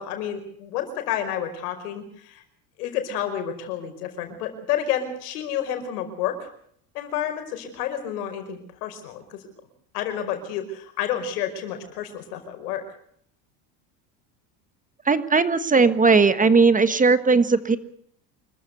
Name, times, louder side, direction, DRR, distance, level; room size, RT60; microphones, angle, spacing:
voice 1, 0.0-2.4 2.8-6.5 6.9-9.4 9.9-12.8, left 9 dB, 85° left, 7 dB, 5.2 m, -30 dB
voice 2, 15.1-17.8, right 4 dB, 15° right, 13 dB, 1.4 m, -18 dB
26.5 x 14.5 x 8.3 m, 0.67 s
supercardioid pair, 110°, 45 cm